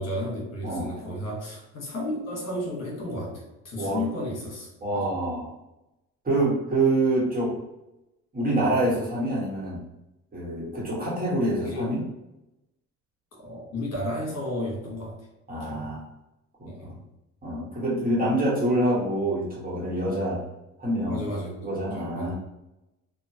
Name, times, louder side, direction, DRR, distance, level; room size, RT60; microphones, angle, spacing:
voice 1, 0.0-5.1 11.6-12.0 13.3-15.3 15.6-16.0 16.6-17.0 21.1-22.3, left 1 dB, 60° left, -3 dB, 1.3 m, -33 dB
voice 2, 0.6-0.9 3.8-4.0 4.8-5.5 6.2-7.6 8.3-9.8 10.3-12.0 15.5-16.0 16.6-17.0 17.4-20.4 20.8-21.2 21.6-22.3, right 1 dB, 30° right, -5 dB, 1.3 m, -26 dB
2.9 x 2.4 x 2.8 m, 0.93 s
cardioid pair, 90°, 30 cm